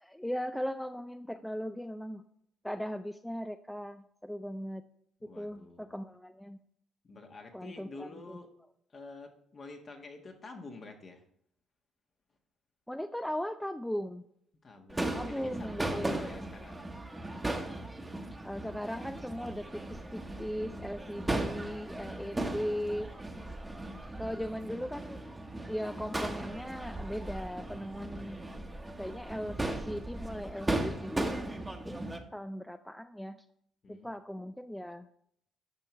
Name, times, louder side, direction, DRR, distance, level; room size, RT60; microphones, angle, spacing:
voice 1, 0.0-2.2 2.6-4.8 5.2-6.6 7.5-8.4 12.9-14.2 15.1-16.3 18.4-23.1 24.2-25.2 25.7-28.4 29.0-33.4 33.9-35.1, equal, 5° left, 10 dB, 0.4 m, -38 dB
voice 2, 5.2-6.0 7.0-8.5 8.9-11.2 14.6-16.8 33.8-34.1, left 3 dB, 45° left, 4 dB, 1.5 m, -48 dB
Crowd / Fireworks, 14.9-32.2, right 2 dB, 15° right, 1.1 m, -37 dB
9.9 x 5.6 x 3.2 m, 0.71 s
supercardioid pair, 60°, 0 cm